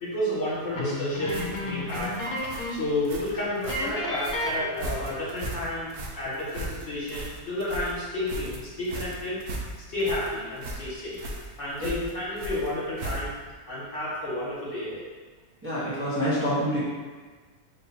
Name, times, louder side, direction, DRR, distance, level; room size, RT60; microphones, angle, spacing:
voice 1, 0.0-2.1 2.7-5.9 6.2-9.4 9.9-11.2 11.6-13.3 13.7-15.0, left 1 dB, 55° left, -9 dB, 1.7 m, -31 dB
sound 1, 0.7-2.9 3.2-3.3 3.7-5.3, left 1 dB, 70° left, 1.1 m, -32 dB
sound 2, 1.3-13.5, right 2 dB, 65° right, 1.0 m, -37 dB
voice 2, 15.6-16.8, equal, 10° right, -11 dB, 0.9 m, -27 dB
3.8 x 2.6 x 4.3 m, 1.4 s
omnidirectional pair, 1.6 m